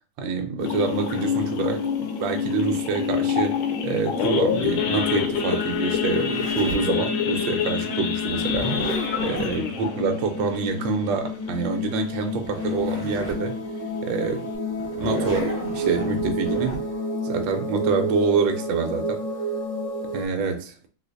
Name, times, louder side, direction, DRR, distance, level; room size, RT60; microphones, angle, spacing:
voice 1, 0.2-3.6 3.8-8.7 9.2-13.5 14.0-14.5 15.0-16.8 17.2-19.2 20.1-20.8, right 5 dB, 75° right, 1.3 m, -26 dB
sound 1, 0.6-20.3, left 3 dB, 55° left, 1.0 m, -29 dB
Idling / Accelerating revving vroom / Sawing, 0.7-11.7 12.1-12.3 12.6-12.7 13.2-13.4 13.9-14.0 14.2-14.6, left 7 dB, 85° left, 1.4 m, -29 dB
Zipper (clothing), 4.2-6.9 8.3-9.5 12.1-12.2 12.4-13.5 13.9-14.0 14.8-16.8, right 1 dB, 25° right, 1.2 m, -33 dB
3.9 x 2.5 x 2.5 m
omnidirectional pair, 2.2 m